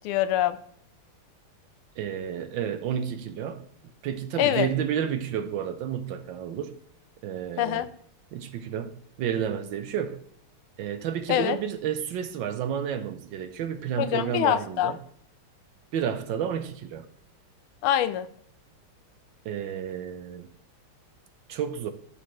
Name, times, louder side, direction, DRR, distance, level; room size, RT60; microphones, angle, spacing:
voice 1, 0.0-0.6 4.4-4.7 7.6-7.9 11.3-11.6 14.0-14.9 17.8-18.3, left 12 dB, 90° left, 1.5 m, -24 dB
voice 2, 2.0-3.6 4.0-6.8 7.2-7.9 8.3-10.2 10.8-15.0 15.9-17.1 19.4-20.5 21.5-21.9, right 8 dB, 70° right, 1.3 m, -31 dB
12.0 x 6.4 x 3.2 m
omnidirectional pair, 2.3 m